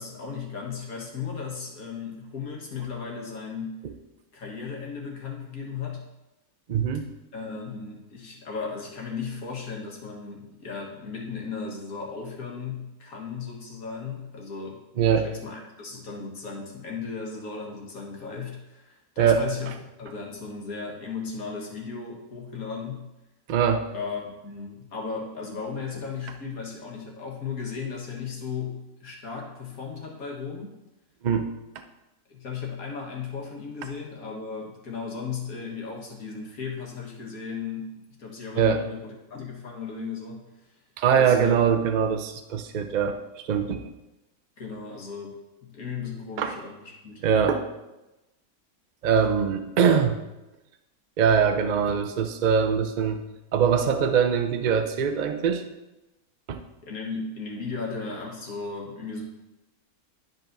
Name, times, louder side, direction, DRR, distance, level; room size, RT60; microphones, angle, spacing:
voice 1, 0.0-3.8 4.3-6.0 7.3-14.8 15.1-19.7 20.0-23.1 23.9-30.7 32.3-40.4 41.2-41.6 44.6-45.4 45.6-47.2 56.8-59.2, left 5 dB, 75° left, -1 dB, 1.8 m, -36 dB
voice 2, 6.7-7.1 15.0-15.3 19.2-19.4 23.5-23.8 31.2-31.5 38.6-38.8 41.0-43.2 43.4-43.9 46.4-46.5 47.2-47.7 49.0-50.2 51.2-53.2 53.5-55.6 56.5-56.6, right 7 dB, 65° right, 7 dB, 0.4 m, -22 dB
11.0 x 5.2 x 2.6 m, 0.99 s
omnidirectional pair, 1.5 m